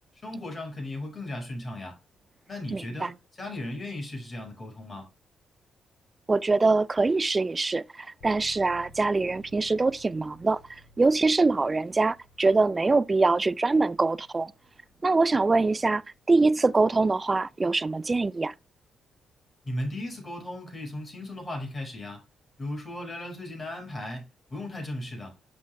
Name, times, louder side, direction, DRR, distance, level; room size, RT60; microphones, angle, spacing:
voice 1, 0.2-2.0 2.5-5.1 19.6-22.2 22.6-25.3, left 1 dB, 35° left, 5.1 m, -36 dB
voice 2, 2.7-3.1 6.3-14.5 15.0-16.0 16.3-18.5, right 3 dB, 30° right, 0.4 m, -24 dB
sound 1, 8.2-18.7, equal, 70° left, 2.2 m, -56 dB
11.5 x 6.1 x 2.3 m
hypercardioid pair, 40°, 0 cm